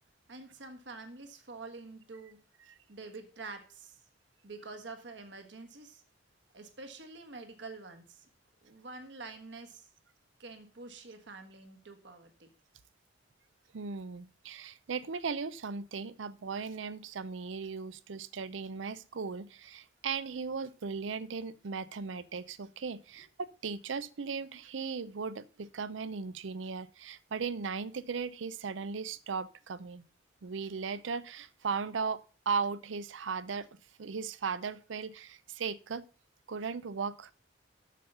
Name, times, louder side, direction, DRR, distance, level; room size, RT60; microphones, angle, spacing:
voice 1, 0.3-2.4 2.9-4.0 4.4-6.0 6.5-8.3 8.6-9.9 10.4-12.5, right 3 dB, 65° right, 7 dB, 1.5 m, -47 dB
voice 2, 13.7-30.0 30.4-32.2 32.5-33.7 34.0-36.0 36.5-37.3, right 5 dB, 80° right, 17 dB, 0.6 m, -37 dB
7.4 x 7.0 x 5.5 m, 0.38 s
head